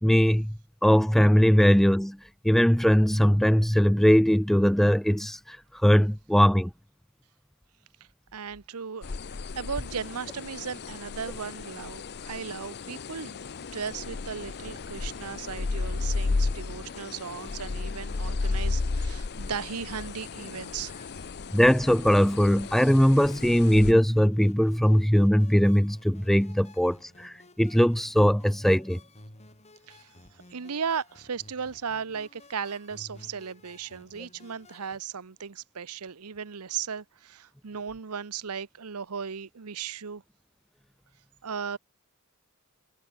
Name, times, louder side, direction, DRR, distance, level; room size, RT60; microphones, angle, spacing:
voice 1, 0.0-2.2 2.4-5.6 5.8-6.7 21.5-29.0, equal, ahead, 0.3 m, -21 dB
voice 2, 8.3-13.4 13.7-21.1 29.9-30.1 30.5-40.2 41.4-41.8, right 6 dB, 85° right, 0.9 m, -36 dB
Bats outside Pak Chong Thailand, 9.0-23.9, left 3 dB, 50° left, 0.7 m, -33 dB
sound 1, 16.7-35.0, left 2 dB, 30° left, 6.0 m, -54 dB
head